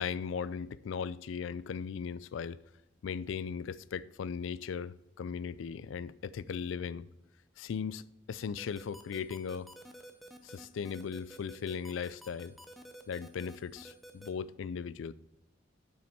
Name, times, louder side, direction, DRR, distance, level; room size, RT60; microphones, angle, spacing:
voice 1, 0.0-2.6 3.0-7.1 7.6-8.0 8.3-9.7 10.4-12.6 13.1-15.1, left 6 dB, 90° left, 0.4 m, -38 dB
sound 1, 8.6-14.3, equal, ahead, 0.5 m, -50 dB
7.1 x 5.9 x 4.4 m
head